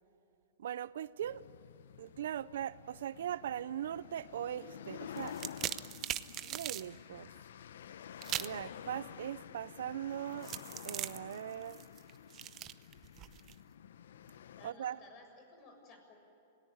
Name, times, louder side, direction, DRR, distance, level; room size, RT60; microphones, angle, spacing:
voice 1, 0.6-1.5 2.0-5.4 6.4-7.3 8.4-10.5 10.8-11.8 14.6-15.0, right 10 dB, 75° right, 18 dB, 0.6 m, -40 dB
sound 1, 1.2-14.7, left 9 dB, 80° left, 0.8 m, -50 dB
sound 2, 5.2-6.9 8.2-8.6 10.4-13.5, right 13 dB, 30° right, 0.8 m, -40 dB
voice 2, 14.6-16.1, left 3 dB, 35° left, 4 dB, 7.1 m, -56 dB
26.5 x 18.5 x 9.9 m, 2.9 s
hypercardioid pair, 135°, 0 cm